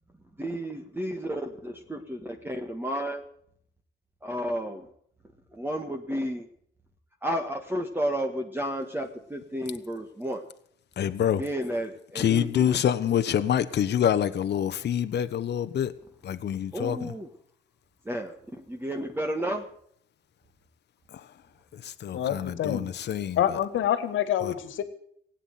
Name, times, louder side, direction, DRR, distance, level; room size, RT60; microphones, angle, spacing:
voice 1, 0.4-3.2 4.2-4.9 5.5-6.5 7.2-10.4 11.4-12.8 16.7-17.3 18.0-18.3 18.7-19.6, equal, 10° right, 4 dB, 1.7 m, -32 dB
voice 2, 11.0-11.4 12.1-15.9 16.2-17.1 21.8-23.4 24.4-24.5, left 9 dB, 60° left, 10 dB, 1.1 m, -26 dB
voice 3, 22.1-22.8 23.4-24.8, left 10 dB, 75° left, 12 dB, 1.9 m, -26 dB
17.0 x 9.1 x 9.3 m, 0.67 s
cardioid pair, 90°, 20 cm